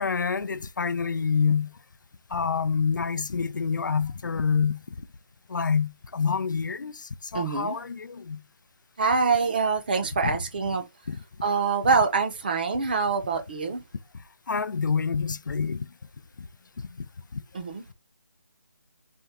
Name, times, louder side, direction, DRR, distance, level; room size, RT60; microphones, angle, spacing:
voice 1, 0.0-1.7 2.3-4.8 5.5-7.0 7.3-8.4 10.2-10.4 11.1-11.2 11.8-11.9 14.5-15.8, left 5 dB, 70° left, 0.5 m, -27 dB
voice 2, 7.3-7.8 9.0-10.8 11.4-13.8 17.5-17.8, right 5 dB, 25° right, 0.7 m, -25 dB
4.3 x 2.3 x 3.5 m
hypercardioid pair, 170°, 11 cm